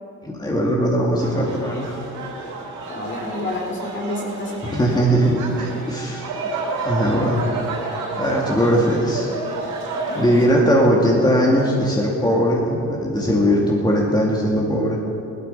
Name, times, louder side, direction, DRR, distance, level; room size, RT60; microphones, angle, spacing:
voice 1, 0.2-2.0 4.7-5.4 5.9-6.3 6.8-7.4 8.2-9.3 10.1-15.0, equal, 15° left, -3 dB, 2.3 m, -19 dB
sound 1, 1.2-10.5, right 3 dB, 80° right, 3.5 m, -30 dB
voice 2, 2.9-5.1 9.9-10.5, left 1 dB, 40° left, 0 dB, 3.1 m, -30 dB
17.0 x 12.5 x 5.7 m, 2.7 s
cardioid pair, 90°, 30 cm